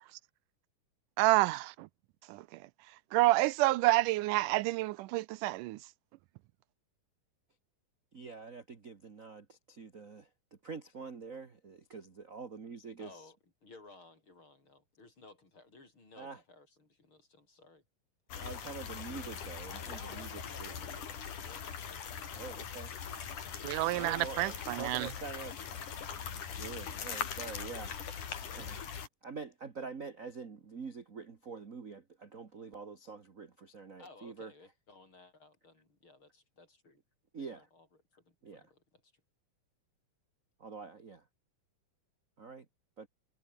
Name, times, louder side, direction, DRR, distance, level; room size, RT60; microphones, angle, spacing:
voice 1, 1.2-1.9 2.3-2.4 3.1-5.8 23.6-25.1, right 18 dB, 85° right, 2.1 m, -28 dB
voice 2, 8.1-10.3 10.6-13.3 16.1-16.4 18.4-21.0 22.3-22.9 23.9-25.5 26.6-27.9 28.5-28.9 29.2-34.5 37.3-37.7 38.4-38.7 40.6-41.2 42.4-42.6 43.0-43.1, right 4 dB, 35° right, 1.5 m, -46 dB
voice 3, 13.0-13.4 13.6-17.8 19.7-21.1 21.4-22.1 34.0-37.0 37.4-37.9 38.1-39.1, left 3 dB, 40° left, 6.3 m, -57 dB
sound 1, 18.3-29.1, left 7 dB, 75° left, 4.5 m, -41 dB
omnidirectional pair, 3.7 m